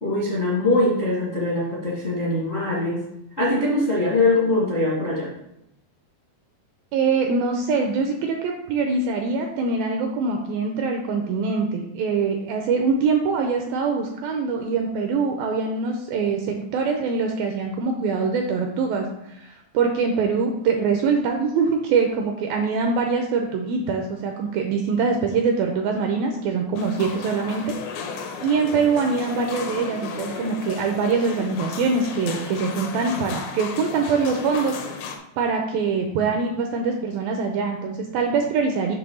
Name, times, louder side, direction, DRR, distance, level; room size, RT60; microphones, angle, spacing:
voice 1, 0.0-3.0 3.4-5.3, left 2 dB, 45° left, -6 dB, 0.8 m, -22 dB
voice 2, 6.9-27.6 28.2-34.8 35.4-39.0, right 4 dB, 80° right, 3 dB, 2.1 m, -23 dB
sound 1, 26.8-35.2, left 6 dB, 75° left, 2.5 m, -34 dB
8.1 x 3.4 x 6.3 m, 0.82 s
omnidirectional pair, 4.8 m